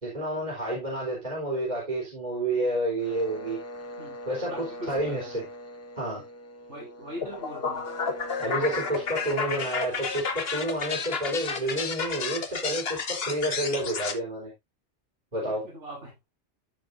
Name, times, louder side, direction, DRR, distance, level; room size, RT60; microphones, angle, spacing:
voice 1, 0.0-3.6 4.3-5.4 6.0-6.2 8.4-14.5 15.3-15.7, right 1 dB, 40° right, 3.7 m, -30 dB
sound 1, 3.0-10.7, equal, 15° left, 1.3 m, -42 dB
voice 2, 4.5-5.3 6.7-7.8 15.5-16.1, right 1 dB, 80° right, 6.9 m, -41 dB
sound 2, 7.2-14.2, left 5 dB, 60° left, 1.4 m, -31 dB
14.0 x 5.4 x 2.5 m
omnidirectional pair, 1.2 m